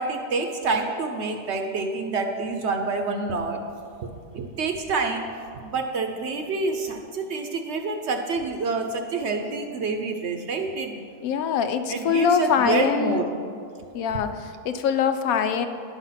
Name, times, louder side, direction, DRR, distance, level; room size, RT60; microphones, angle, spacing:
voice 1, 0.0-3.6 4.3-5.2 5.6-11.1 11.9-13.2, right 3 dB, 60° right, 4 dB, 0.9 m, -27 dB
voice 2, 11.2-13.3 13.9-15.7, left 7 dB, 75° left, 8 dB, 1.0 m, -23 dB
10.5 x 6.2 x 5.7 m, 2.4 s
omnidirectional pair, 1.5 m